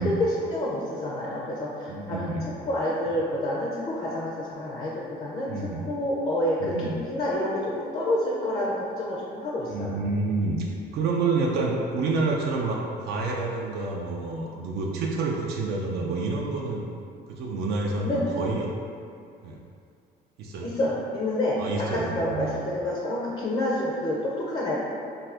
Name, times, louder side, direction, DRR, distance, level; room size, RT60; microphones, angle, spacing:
voice 1, 0.0-2.4 2.7-10.0 18.0-18.3 20.6-24.8, left 1 dB, 35° left, -4 dB, 0.4 m, -28 dB
voice 2, 1.9-2.5 5.5-5.9 6.6-7.0 9.7-10.7 10.9-16.9 17.3-18.7 19.4-19.6 20.4-20.7 21.6-22.6, right 3 dB, 70° right, -2 dB, 0.4 m, -28 dB
2.6 x 2.5 x 3.3 m, 2.4 s
cardioid pair, 110°, 17 cm